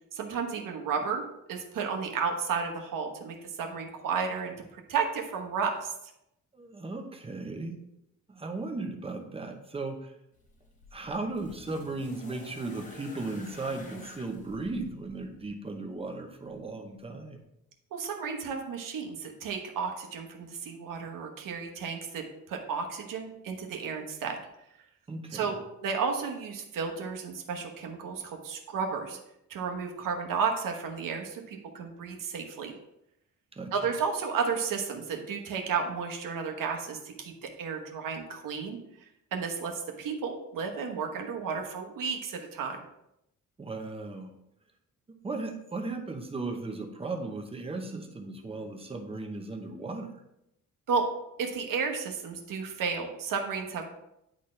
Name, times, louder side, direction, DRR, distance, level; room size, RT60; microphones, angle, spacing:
voice 1, 0.1-1.2 1.5-5.9 17.9-24.4 25.3-25.6 25.8-29.2 29.5-32.7 33.7-38.8 39.3-42.8 50.9-51.1 51.4-53.9, right 5 dB, 80° right, 2 dB, 1.2 m, -33 dB
voice 2, 6.5-7.8 8.3-10.1 10.9-17.4 25.1-25.6 33.5-33.7 43.6-44.3 45.1-50.2, right 3 dB, 20° right, 3 dB, 0.8 m, -36 dB
sound 1, 10.3-15.5 16.6-16.7, left 2 dB, 25° left, 1.0 m, -49 dB
10.0 x 4.2 x 3.2 m, 0.82 s
wide cardioid pair, 170°, 32 cm